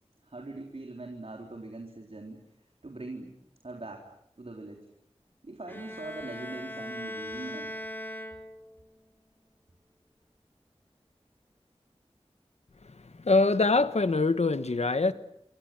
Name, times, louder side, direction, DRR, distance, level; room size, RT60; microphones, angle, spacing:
voice 1, 0.2-2.4 2.8-3.4 3.6-4.1 4.4-4.8 5.4-7.7, right 2 dB, 65° right, 3.8 m, -41 dB
Bowed string instrument, 5.7-8.9, left 1 dB, 15° left, 5.5 m, -40 dB
voice 2, 12.8-15.1, left 3 dB, 80° left, 1.4 m, -24 dB
28.5 x 25.0 x 7.8 m
wide cardioid pair, 55°, 11 cm